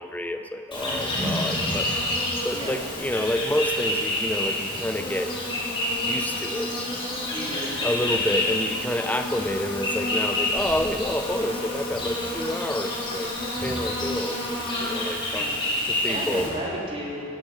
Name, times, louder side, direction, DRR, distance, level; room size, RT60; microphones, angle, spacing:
voice 1, 0.0-1.9 2.4-5.4 6.0-6.7 7.8-13.3 13.6-15.5 15.9-16.5, left 1 dB, 10° left, 7 dB, 0.6 m, -29 dB
Insect, 0.7-16.5, left 1 dB, 25° left, 3.6 m, -28 dB
voice 2, 0.7-1.9 2.5-2.7 7.3-7.7 15.3-17.2, equal, 25° right, -5 dB, 2.7 m, -34 dB
16.0 x 11.0 x 5.7 m, 2.7 s
head